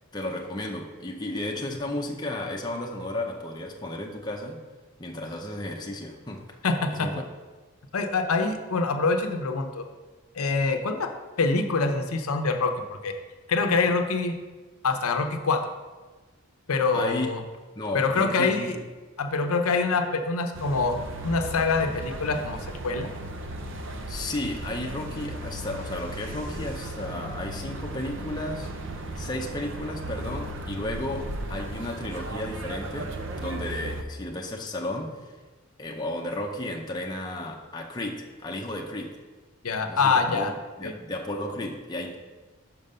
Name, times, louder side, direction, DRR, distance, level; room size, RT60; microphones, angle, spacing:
voice 1, 0.1-4.6 5.0-6.5 6.9-7.3 16.9-17.3 17.7-18.8 24.1-28.7 29.2-35.3 35.8-39.2 39.9-42.2, left 1 dB, 20° left, 0 dB, 0.6 m, -33 dB
voice 2, 6.6-7.1 7.9-9.8 10.4-11.1 11.4-13.1 13.5-14.3 14.8-15.6 16.7-17.4 17.9-18.8 19.2-22.6 22.8-23.1 39.6-40.5 40.8-40.9, left 4 dB, 80° left, 6 dB, 0.6 m, -25 dB
sound 1, 20.5-34.0, right 1 dB, 55° right, 0.6 m, -36 dB
5.9 x 5.2 x 5.4 m, 1.3 s
head